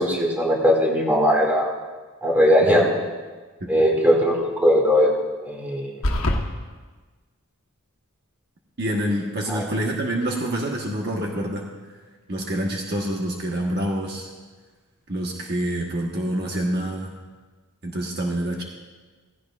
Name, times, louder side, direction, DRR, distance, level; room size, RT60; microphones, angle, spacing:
voice 1, 0.0-1.7 2.2-2.9 3.7-5.1 5.4-5.9 9.5-9.7, equal, 10° right, -3 dB, 2.4 m, -19 dB
sound 1, 6.0-6.4, left 1 dB, 70° left, 1.3 m, -21 dB
voice 2, 8.8-11.7 12.3-14.3 15.1-17.1 17.8-18.6, right 1 dB, 50° right, -1 dB, 1.3 m, -26 dB
17.0 x 16.0 x 2.5 m, 1.3 s
head